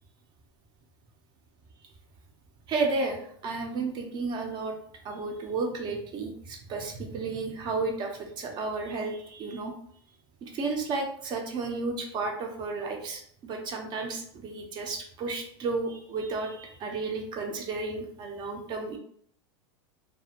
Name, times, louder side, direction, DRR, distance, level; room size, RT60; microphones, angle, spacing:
voice 1, 2.7-4.8 5.0-9.7 10.4-19.0, right 3 dB, 35° right, 2 dB, 0.6 m, -32 dB
2.5 x 2.3 x 2.8 m, 0.63 s
supercardioid pair, 140°, 14 cm